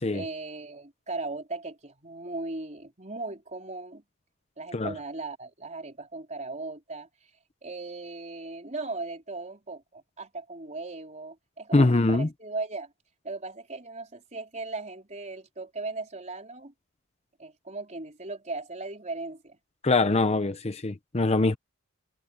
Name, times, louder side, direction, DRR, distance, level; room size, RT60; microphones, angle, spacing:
voice 1, 0.1-4.0 4.6-7.1 7.6-12.9 13.2-16.7 17.4-19.6, right 3 dB, 35° right, 4.5 m, -37 dB
voice 2, 11.7-12.3 19.8-21.6, left 2 dB, 30° left, 0.7 m, -23 dB
head